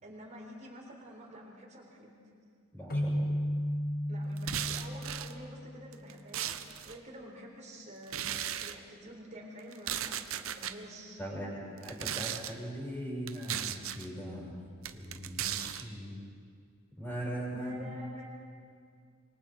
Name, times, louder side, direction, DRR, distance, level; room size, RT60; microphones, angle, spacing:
voice 1, 0.0-2.1 4.1-8.4 8.6-11.4 17.5-18.3, equal, 35° right, -1 dB, 4.2 m, -48 dB
voice 2, 2.7-3.2 11.2-16.2 17.0-17.9, equal, 10° left, -6 dB, 7.5 m, -40 dB
sound 1, 2.9-6.4, equal, 45° left, 1.6 m, -34 dB
sound 2, 4.4-5.3 5.9-7.0 8.1-8.7 9.7-10.7 11.8-12.5 13.3-14.1 14.8-15.8, right 10 dB, 70° right, 0.8 m, -36 dB
26.0 x 23.5 x 4.5 m, 2.1 s
head